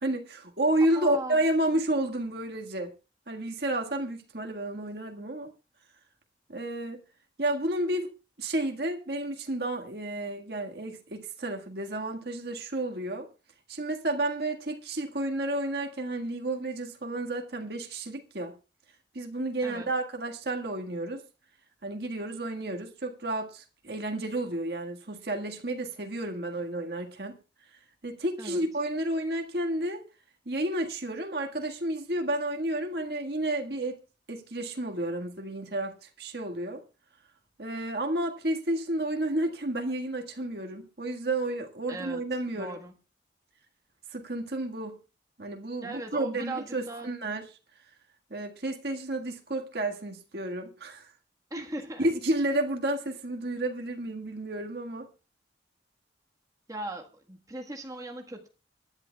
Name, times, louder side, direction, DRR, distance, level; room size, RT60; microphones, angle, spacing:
voice 1, 0.0-2.9 3.3-5.5 6.5-7.0 7.4-8.1 8.4-13.3 13.7-18.5 19.1-21.2 21.8-27.4 28.0-30.0 30.5-34.0 34.3-36.8 37.6-42.8 44.1-45.0 45.4-47.5 48.3-51.1 52.0-55.1, right 1 dB, 60° right, 1.8 m, -31 dB
voice 2, 0.9-1.4 19.6-19.9 28.4-28.7 41.9-42.9 45.8-47.1 51.5-52.1 56.7-58.5, right 2 dB, 20° right, 1.5 m, -38 dB
24.5 x 11.0 x 2.3 m
head